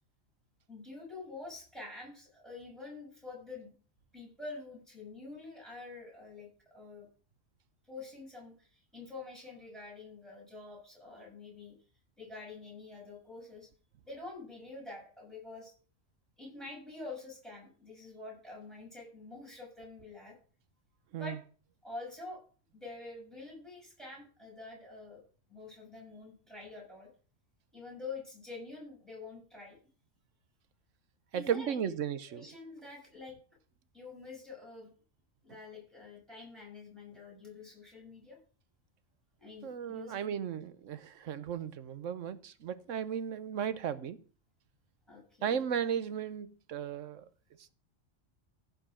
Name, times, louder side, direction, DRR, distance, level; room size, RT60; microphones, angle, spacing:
voice 1, 0.7-3.7 4.1-7.1 7.9-11.8 12.2-13.7 14.1-15.7 16.4-20.3 21.1-21.4 21.8-22.4 22.7-25.2 25.5-27.1 27.7-29.8 31.3-31.9 32.3-33.4 33.9-34.9 35.4-38.4 39.4-40.2 45.1-45.6, left 3 dB, ahead, -4 dB, 6.5 m, -47 dB
voice 2, 31.3-32.5 39.6-44.2 45.4-47.3, right 8 dB, 80° right, 13 dB, 1.2 m, -35 dB
15.5 x 5.4 x 4.9 m, 0.40 s
omnidirectional pair, 1.3 m